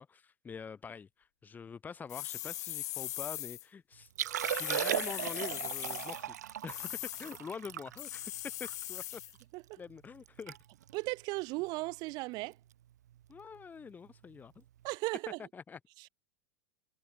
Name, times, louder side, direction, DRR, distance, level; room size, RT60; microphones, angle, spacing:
voice 1, 0.0-4.1 4.4-9.2 9.8-10.6 13.3-14.6 15.5-15.8, left 6 dB, 20° left, 5.9 m, -45 dB
sound 1, 2.1-3.6 4.4-6.2 6.7-7.4 8.0-9.3, left 15 dB, 75° left, 1.1 m, -40 dB
Liquid, 4.1-9.4 9.9-10.0 10.3-10.6 10.8-11.1 11.7-11.9 13.4-13.5, right 12 dB, 85° right, 0.8 m, -37 dB
voice 2, 10.9-12.6 14.8-15.4 16.0-16.1, right 24 dB, 50° right, 4.5 m, -36 dB
hypercardioid pair, 120°, 9 cm